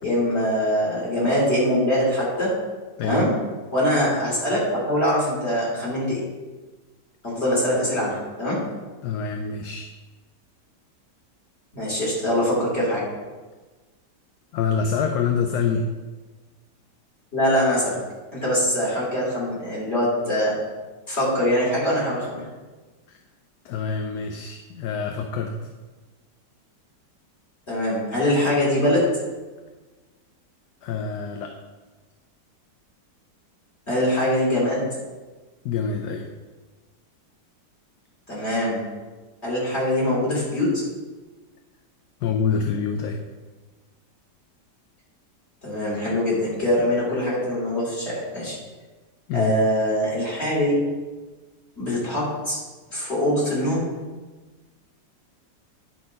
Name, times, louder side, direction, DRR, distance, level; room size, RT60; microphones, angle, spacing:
voice 1, 0.0-2.5 3.0-3.3 3.7-6.2 7.2-8.6 11.7-13.0 17.3-18.0 18.3-20.5 21.1-22.4 27.7-29.1 33.9-34.8 38.3-38.8 39.4-40.8 45.6-48.5 49.3-50.8 51.8-52.6 52.9-53.9, equal, 35° left, -6 dB, 3.1 m, -23 dB
voice 2, 3.0-3.3 9.0-9.9 14.5-15.9 23.1-23.2 23.6-25.5 30.8-31.5 35.6-36.3 42.2-43.2 49.3-49.5, left 6 dB, 75° left, 4 dB, 1.1 m, -26 dB
10.0 x 3.9 x 5.2 m, 1.3 s
omnidirectional pair, 1.9 m